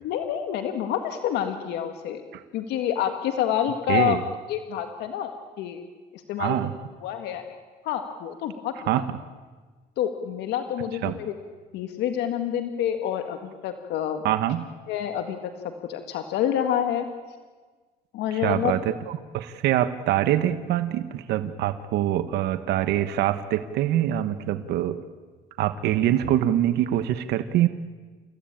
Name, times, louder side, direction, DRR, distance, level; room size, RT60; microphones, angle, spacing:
voice 1, 0.0-2.2 2.5-4.2 4.5-5.3 5.6-5.8 6.3-6.6 7.0-7.4 7.8-9.0 10.0-11.3 11.7-14.2 14.9-15.4 15.9-17.1 18.1-18.7, left 10 dB, 85° left, 7 dB, 1.8 m, -27 dB
voice 2, 3.9-4.2 6.4-6.7 8.9-9.0 11.0-11.2 14.2-14.7 18.3-25.0 25.6-27.7, right 12 dB, 80° right, 11 dB, 1.2 m, -24 dB
30.0 x 15.5 x 8.9 m, 1.4 s
cardioid pair, 110°, 17 cm